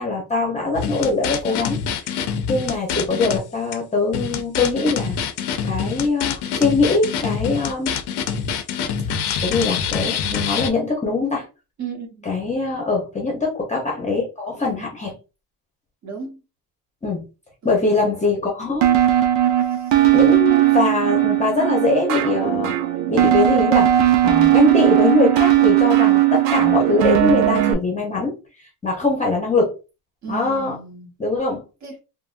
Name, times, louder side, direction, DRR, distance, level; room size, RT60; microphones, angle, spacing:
voice 1, 0.0-1.8 2.1-5.2 5.6-8.0 9.4-11.5 12.2-15.2 17.0-17.2 17.6-19.3 20.1-22.8 23.1-23.9 24.2-28.4 28.8-29.7 30.3-30.8 31.2-31.6, left 3 dB, 15° left, 0.8 m, -22 dB
sound 1, 0.7-3.4 3.7-3.8 4.1-10.7, left 7 dB, 65° left, 0.6 m, -26 dB
voice 2, 11.8-12.3 16.0-16.4 17.6-18.0 19.7-19.9 20.3-20.4 30.2-31.1 31.8-32.0, right 5 dB, 40° right, 1.1 m, -35 dB
sound 2, 18.8-27.7, right 13 dB, 85° right, 0.7 m, -17 dB
3.4 x 2.1 x 2.5 m
cardioid pair, 155°, 42 cm